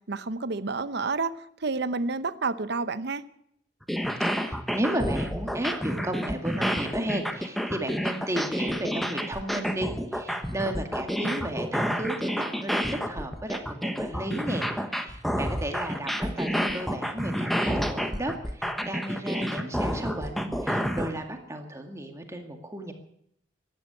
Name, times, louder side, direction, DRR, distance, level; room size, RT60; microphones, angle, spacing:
voice 1, 0.1-3.2, right 3 dB, 65° right, 14 dB, 0.9 m, -29 dB
sound 1, 3.8-21.1, equal, ahead, 1.3 m, -29 dB
voice 2, 4.2-14.7 14.9-22.9, right 1 dB, 15° right, 4 dB, 2.1 m, -34 dB
16.0 x 11.0 x 8.3 m, 0.73 s
head